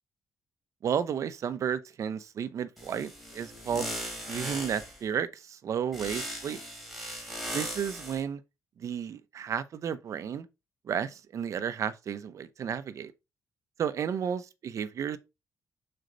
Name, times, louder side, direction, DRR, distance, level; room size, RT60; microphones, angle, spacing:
voice 1, 0.8-3.9 4.3-6.6 7.5-8.4 8.8-10.5 10.9-13.1 13.8-15.2, right 8 dB, 60° right, 0.8 m, -32 dB
sound 1, 2.8-5.0 5.9-8.2, equal, ahead, 3.1 m, -38 dB
6.5 x 4.5 x 3.9 m
cardioid pair, 100°, 6 cm